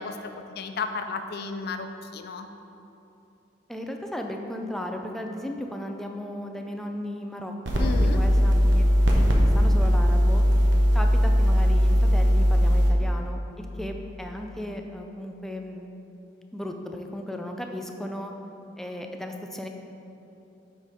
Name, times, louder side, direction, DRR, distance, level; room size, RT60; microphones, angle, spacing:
voice 1, 0.0-2.5 7.8-8.2, left 4 dB, 60° left, 7 dB, 0.4 m, -33 dB
voice 2, 3.7-8.8 9.1-10.4 10.9-15.8 16.5-18.3 18.8-19.7, left 1 dB, ahead, 3 dB, 0.4 m, -35 dB
sound 1, 7.7-12.9, equal, 80° right, 0.9 m, -19 dB
7.2 x 4.1 x 5.0 m, 2.9 s
head